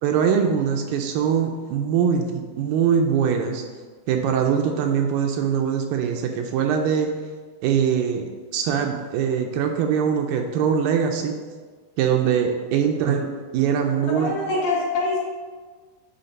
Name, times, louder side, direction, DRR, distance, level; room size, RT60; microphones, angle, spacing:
voice 1, 0.0-3.6 4.1-7.1 7.6-11.4 12.0-14.4, right 7 dB, 80° right, 3 dB, 2.2 m, -22 dB
voice 2, 14.2-15.2, left 2 dB, 65° left, -5 dB, 3.0 m, -24 dB
9.9 x 3.5 x 5.2 m, 1.5 s
omnidirectional pair, 4.2 m